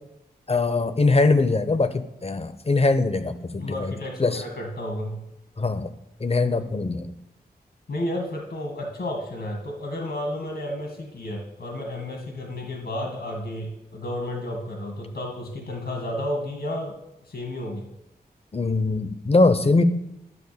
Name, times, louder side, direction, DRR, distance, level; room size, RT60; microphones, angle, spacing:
voice 1, 0.5-3.9 4.2-4.4 5.6-5.9 6.2-7.1 18.5-19.8, left 3 dB, 40° left, 11 dB, 0.8 m, -22 dB
voice 2, 3.6-5.2 6.5-6.7 7.9-17.0 17.3-17.8, left 1 dB, 80° left, 2 dB, 1.9 m, -32 dB
11.0 x 6.3 x 6.9 m, 0.86 s
wide cardioid pair, 75°, 17 cm